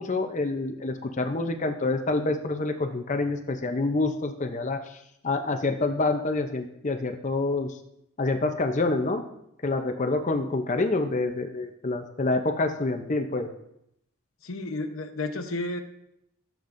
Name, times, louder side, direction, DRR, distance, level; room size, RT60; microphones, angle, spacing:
voice 1, 0.0-5.0 5.2-7.8 8.2-9.2 9.6-13.5, left 2 dB, 35° left, 6 dB, 0.6 m, -27 dB
voice 2, 14.4-15.8, left 2 dB, 65° left, 6 dB, 0.9 m, -32 dB
15.0 x 7.2 x 2.6 m, 0.78 s
head